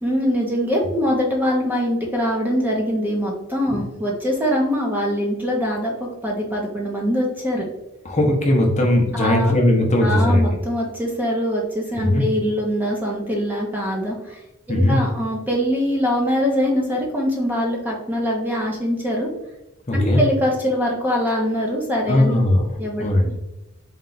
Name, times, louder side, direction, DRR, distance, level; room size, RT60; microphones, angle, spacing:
voice 1, 0.0-7.7 9.1-9.5 10.0-14.4 14.7-19.3 19.9-22.4 22.8-23.1, equal, 10° right, -2 dB, 0.7 m, -23 dB
voice 2, 8.0-10.6 12.0-12.2 14.7-15.0 19.9-20.2 22.1-22.7 23.0-23.4, left 1 dB, 30° left, 0 dB, 0.6 m, -18 dB
4.3 x 2.3 x 3.8 m, 0.93 s
head